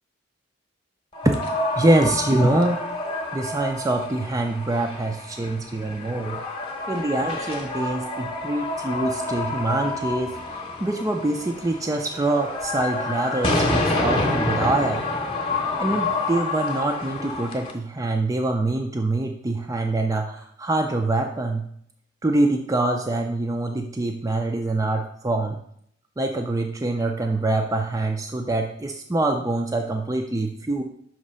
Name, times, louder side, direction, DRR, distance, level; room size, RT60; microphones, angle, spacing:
sound 1, 1.1-17.7, left 2 dB, 30° left, 0.9 m, -28 dB
voice 1, 1.8-2.8 3.3-6.4 6.9-15.0 15.8-21.6 22.2-25.6 26.2-30.8, right 2 dB, 15° right, 2 dB, 0.5 m, -25 dB
6.1 x 2.9 x 5.4 m, 0.65 s
head